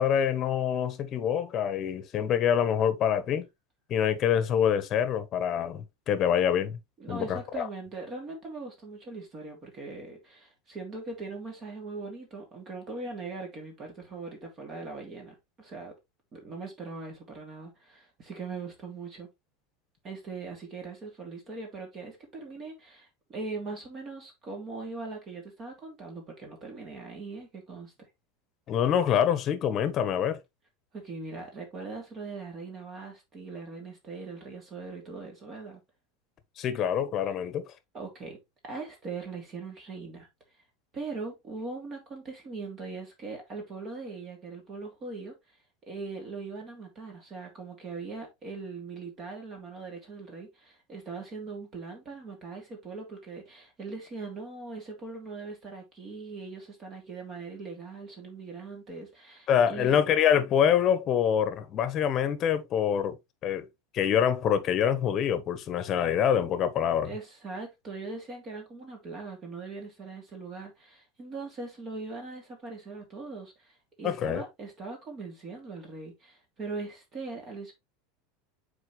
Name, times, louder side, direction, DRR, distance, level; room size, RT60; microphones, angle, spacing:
voice 1, 0.0-3.5 3.9-6.8 7.1-7.7 28.7-30.4 36.6-37.6 59.5-63.2 63.4-63.7 63.9-67.1 74.0-74.4, left 9 dB, 35° left, 1.2 m, -25 dB
voice 2, 7.0-15.9 16.3-19.3 20.0-27.9 30.9-35.8 37.9-38.4 38.6-40.3 40.9-45.3 45.9-60.0 67.0-77.7, right 3 dB, 30° right, 2.8 m, -40 dB
7.2 x 4.5 x 3.2 m
supercardioid pair, 135°, 0 cm